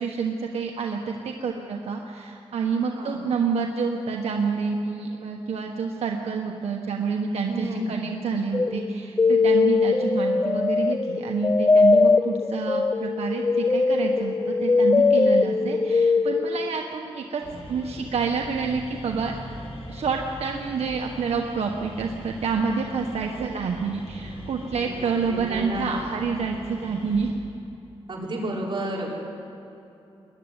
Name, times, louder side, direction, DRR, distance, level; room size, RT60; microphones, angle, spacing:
voice 1, 0.0-17.4 17.7-19.3 19.9-27.4, right 5 dB, 90° right, 1 dB, 1.3 m, -28 dB
voice 2, 2.9-3.3 7.5-8.0 24.9-26.0 28.1-29.1, right 1 dB, 50° right, -4 dB, 5.4 m, -32 dB
sound 1, 8.5-16.8, left 4 dB, 25° left, 0.4 m, -21 dB
sound 2, 17.4-27.3, left 1 dB, 75° left, 4.8 m, -41 dB
21.5 x 12.5 x 9.9 m, 2.9 s
cardioid pair, 85°, 10 cm